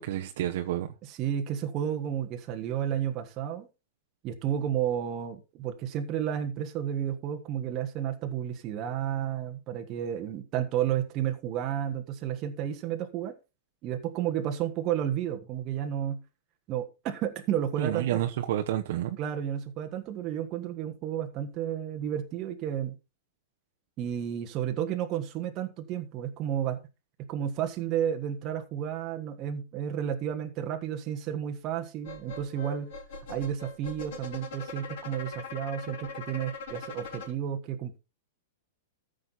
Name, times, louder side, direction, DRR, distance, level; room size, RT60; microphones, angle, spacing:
voice 1, 0.0-0.9 17.8-19.2, right 12 dB, 55° right, 1.0 m, -29 dB
voice 2, 1.1-3.7 4.2-13.3 13.8-16.2 16.7-18.2 19.2-23.0 24.0-26.8 27.3-32.9 33.3-38.0, right 10 dB, 25° right, 1.4 m, -32 dB
sound 1, 32.0-37.3, left 3 dB, 55° left, 5.0 m, -41 dB
14.0 x 6.6 x 4.1 m
supercardioid pair, 165°, 0 cm